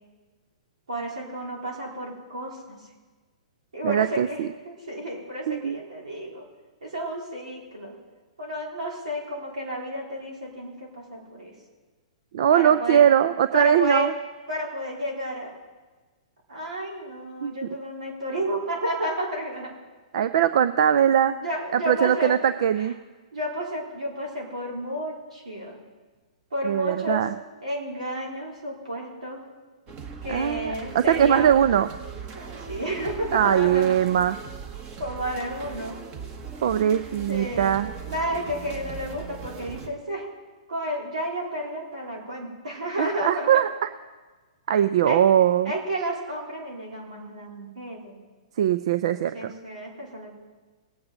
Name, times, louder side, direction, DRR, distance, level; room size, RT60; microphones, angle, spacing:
voice 1, 0.9-2.8 3.7-6.5 6.8-8.0 8.4-11.5 12.5-13.0 13.5-14.1 14.5-15.5 16.5-19.7 21.4-22.3 22.8-22.9 23.3-25.8 26.5-27.3 27.6-29.5 30.2-31.5 32.3-33.9 35.0-36.0 37.3-37.8 38.1-40.3 40.7-43.5 45.1-45.2 45.6-48.2 49.3-50.3, equal, 85° right, -2 dB, 4.1 m, -31 dB
voice 2, 3.8-4.5 5.5-5.8 12.3-14.1 17.4-17.5 20.1-21.3 21.7-23.0 26.7-27.3 30.3-31.9 33.3-34.4 36.6-37.9 43.0-43.7 44.7-45.7 48.6-49.5, right 9 dB, 60° right, 12 dB, 0.4 m, -21 dB
sound 1, 29.9-39.9, right 6 dB, 30° right, 1.7 m, -39 dB
19.5 x 8.6 x 4.0 m, 1.3 s
hypercardioid pair, 125°, 4 cm